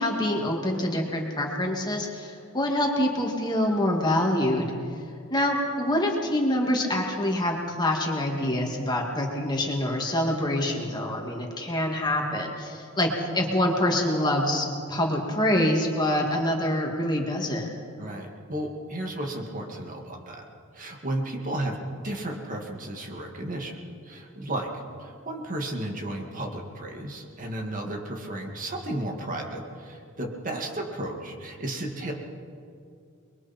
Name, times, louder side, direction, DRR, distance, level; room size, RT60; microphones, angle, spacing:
voice 1, 0.0-4.7 5.3-17.7, left 1 dB, 20° left, 0 dB, 2.5 m, -26 dB
voice 2, 18.0-20.5 20.7-21.8 22.0-23.8 24.0-32.1, right 1 dB, 40° right, 1 dB, 2.4 m, -33 dB
29.5 x 22.5 x 4.5 m, 2.4 s
head